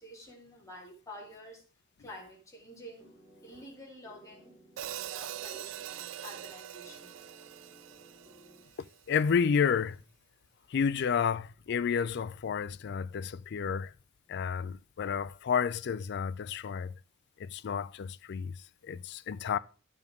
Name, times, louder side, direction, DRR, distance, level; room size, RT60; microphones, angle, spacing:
voice 1, 0.0-1.6 2.0-3.1 3.4-7.1, equal, 15° left, 3.0 m, -49 dB
sound 1, 3.0-9.0, right 1 dB, 5° right, 3.4 m, -58 dB
Hi-hat, 4.8-8.9, right 12 dB, 70° right, 0.3 m, -43 dB
voice 2, 9.1-10.0 10.7-13.9 14.3-16.9 17.4-18.5 18.8-19.6, left 6 dB, 55° left, 0.4 m, -30 dB
10.5 x 7.1 x 3.6 m
head